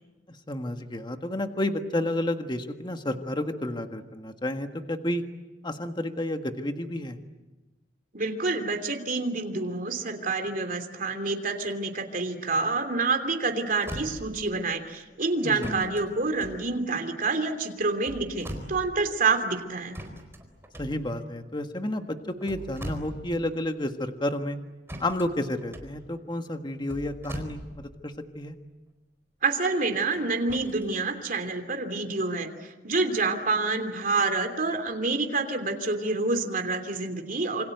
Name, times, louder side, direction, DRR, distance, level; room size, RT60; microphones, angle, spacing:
voice 1, 0.5-5.2 5.6-7.2 15.4-15.8 20.8-24.6 25.0-28.6, left 1 dB, 25° left, 6 dB, 1.6 m, -31 dB
voice 2, 8.1-20.0 29.4-37.6, right 3 dB, 50° right, 5 dB, 3.1 m, -28 dB
sound 1, 13.3-13.4 13.7-14.5 15.6-17.2 17.9-19.1 19.9-21.4 22.2-23.5 23.8-23.9 24.9-28.1 30.1-30.9 31.6-31.7, equal, 15° right, 4.3 m, -41 dB
27.5 x 26.0 x 8.0 m, 1.1 s
head